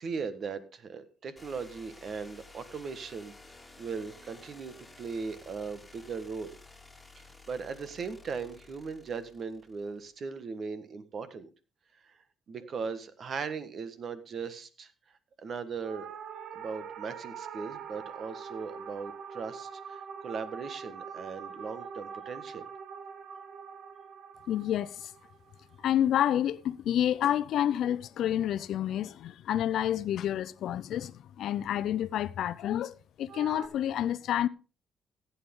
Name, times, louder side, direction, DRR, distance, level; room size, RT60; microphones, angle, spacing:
voice 1, 0.0-3.3 3.8-6.6 7.2-11.5 11.9-12.2 12.5-16.1 16.5-22.7, right 5 dB, 55° right, 1.5 m, -38 dB
sound 1, 1.4-10.1, left 3 dB, 10° left, 2.8 m, -54 dB
sound 2, 15.8-26.3 33.3-33.7, right 7 dB, 75° right, 1.1 m, -44 dB
voice 2, 24.5-25.1 25.8-34.5, left 11 dB, 75° left, 0.6 m, -29 dB
15.5 x 8.6 x 3.7 m
cardioid pair, 90°, 0 cm